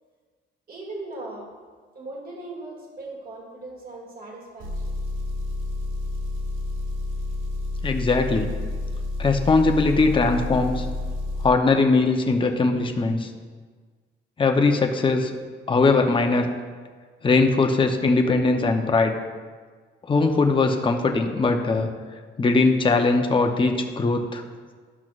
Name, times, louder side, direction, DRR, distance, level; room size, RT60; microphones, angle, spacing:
voice 1, 0.7-1.4 1.9-4.8 8.2-8.3, right 2 dB, 45° right, -2 dB, 2.2 m, -38 dB
Engine, 4.6-11.5, left 2 dB, 90° right, 1.0 m, -29 dB
voice 2, 7.8-8.5 9.2-10.9 11.4-13.3 14.4-15.3 15.7-16.5 17.2-19.2 20.1-21.9 22.4-24.4, left 3 dB, 25° left, 4 dB, 0.8 m, -20 dB
12.0 x 5.9 x 2.5 m, 1.5 s
cardioid pair, 90°, 20 cm